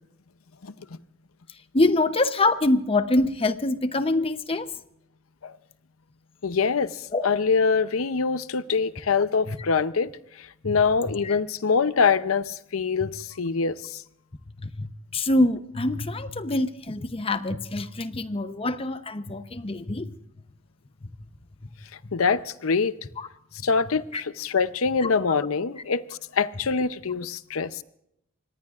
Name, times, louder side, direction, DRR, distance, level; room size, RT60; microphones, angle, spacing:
voice 1, 1.7-4.7 7.1-7.3 9.5-9.6 10.6-10.8 11.2-11.4 14.6-20.1 22.0-22.1 23.2-23.3 24.1-24.2 25.0-25.1, left 2 dB, 25° left, 0.8 m, -25 dB
voice 2, 6.4-10.1 10.4-14.0 22.1-22.9 23.6-27.8, left 5 dB, 80° left, 0.7 m, -24 dB
26.0 x 19.5 x 2.5 m
head